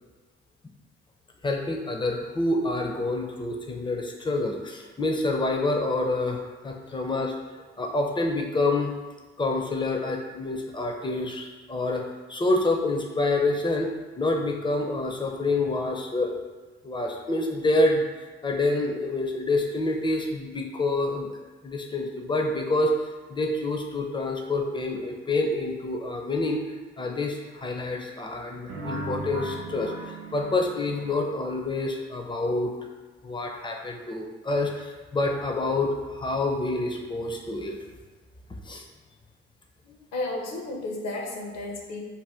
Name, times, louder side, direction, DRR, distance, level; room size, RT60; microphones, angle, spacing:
voice 1, 1.4-7.3 7.8-8.9 9.4-12.0 12.3-16.3 16.8-18.0 18.4-21.4 21.6-22.9 23.3-26.6 27.0-32.7 33.2-37.8 38.7-38.8, left 2 dB, 15° left, 2 dB, 0.5 m, -27 dB
sound 1, 28.7-31.6, right 1 dB, 90° right, 0.6 m, -37 dB
voice 2, 40.1-42.0, left 2 dB, 60° left, 0 dB, 0.8 m, -32 dB
2.7 x 2.2 x 3.4 m, 1.3 s
hypercardioid pair, 50°, 30 cm